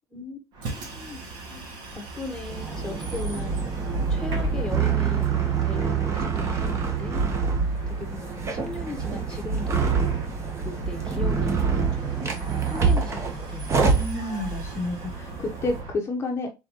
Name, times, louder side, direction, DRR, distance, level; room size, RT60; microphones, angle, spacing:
Bus, 0.5-16.0, right 2 dB, 65° right, 1.8 m, -39 dB
voice 1, 0.7-3.7 3.9-7.2 7.9-10.0 10.6-13.9, left 2 dB, 10° left, 1.1 m, -38 dB
sound 1, 2.5-15.8, right 5 dB, 30° right, 1.0 m, -26 dB
voice 2, 13.9-16.5, left 2 dB, 30° left, 0.8 m, -30 dB
4.2 x 3.8 x 2.9 m
cardioid pair, 125°, 9 cm